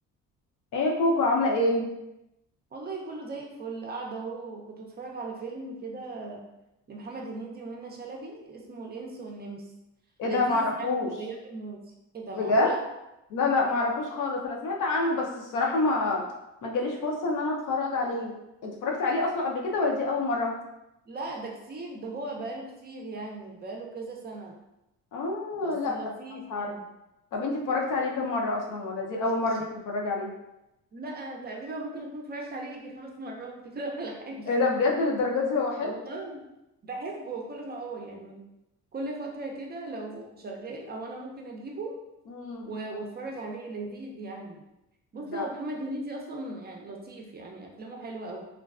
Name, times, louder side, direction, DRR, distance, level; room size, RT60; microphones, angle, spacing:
voice 1, 0.7-1.9 10.2-11.1 12.4-12.7 13.3-16.2 16.6-18.3 18.6-20.6 25.1-26.0 26.5-26.7 27.3-30.3 34.5-35.9 42.3-42.7 45.3-45.5, left 3 dB, 70° left, -1 dB, 0.6 m, -27 dB
voice 2, 2.7-6.4 6.9-9.7 10.2-10.9 11.2-11.8 12.1-12.8 21.1-24.6 25.6-26.8 30.9-34.5 35.8-36.4 36.8-38.4 38.9-42.0 42.6-44.6 45.1-48.5, right 2 dB, 30° right, 0 dB, 0.4 m, -38 dB
2.5 x 2.2 x 2.3 m, 0.90 s
cardioid pair, 95°, 32 cm